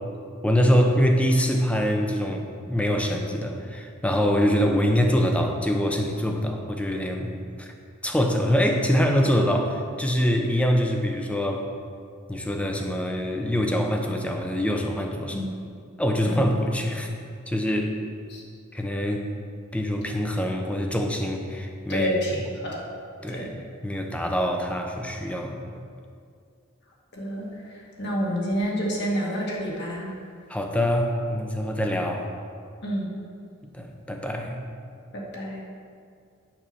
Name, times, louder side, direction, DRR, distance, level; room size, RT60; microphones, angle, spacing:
voice 1, 0.4-7.7 8.0-11.7 12.3-15.4 16.0-17.1 17.5-18.0 18.7-19.3 19.7-22.1 23.2-25.8 30.5-32.3 33.7-34.6, equal, 5° left, 2 dB, 0.8 m, -24 dB
voice 2, 21.9-22.9 23.3-23.5 27.1-30.1 32.8-33.1 35.1-35.6, equal, 55° left, -3 dB, 2.1 m, -29 dB
8.9 x 5.5 x 7.0 m, 2.3 s
head